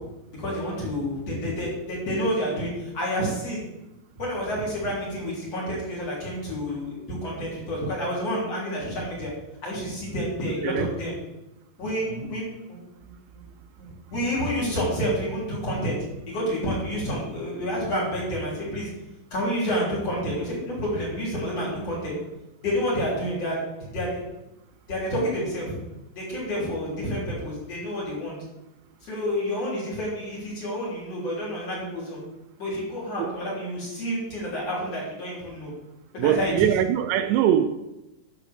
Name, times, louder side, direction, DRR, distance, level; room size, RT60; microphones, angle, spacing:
voice 1, 0.3-3.6 4.2-9.3 9.6-11.1 11.8-12.8 14.1-16.0 16.3-18.9 19.3-22.1 22.6-24.1 24.9-25.7 26.2-28.4 29.0-32.2 32.6-35.7 36.1-36.7, equal, 35° left, -6 dB, 4.2 m, -29 dB
voice 2, 36.2-37.7, right 10 dB, 80° right, 8 dB, 2.7 m, -22 dB
11.0 x 5.2 x 6.8 m, 0.95 s
omnidirectional pair, 5.1 m